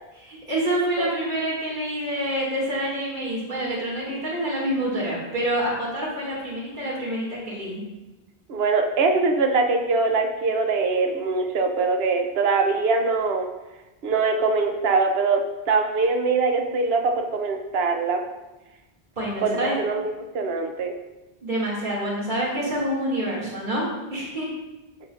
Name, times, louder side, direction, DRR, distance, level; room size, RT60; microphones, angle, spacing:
voice 1, 0.1-7.8 19.2-19.8 21.4-23.9 24.1-24.5, right 1 dB, 50° right, -7 dB, 2.3 m, -27 dB
voice 2, 8.5-13.5 14.0-15.4 15.7-18.2 19.4-20.9, right 4 dB, 75° right, 4 dB, 1.0 m, -22 dB
12.0 x 4.8 x 2.5 m, 1.1 s
omnidirectional pair, 1.0 m